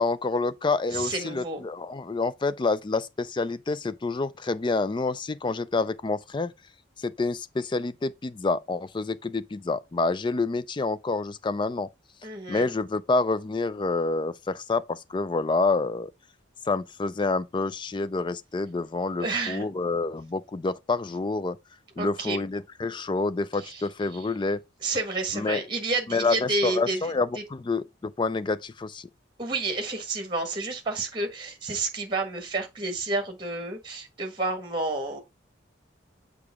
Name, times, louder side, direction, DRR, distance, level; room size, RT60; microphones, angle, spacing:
voice 1, 0.0-6.5 7.0-11.9 12.5-16.1 16.7-21.6 22.0-24.6 25.3-25.6 26.1-29.1, left 3 dB, 25° left, 0.3 m, -28 dB
voice 2, 0.9-1.6 12.2-12.7 19.2-19.7 22.0-22.4 23.5-23.9 24.1-24.3 24.8-27.4 29.4-35.2, right 3 dB, 25° right, 1.4 m, -30 dB
6.8 x 4.7 x 3.6 m
head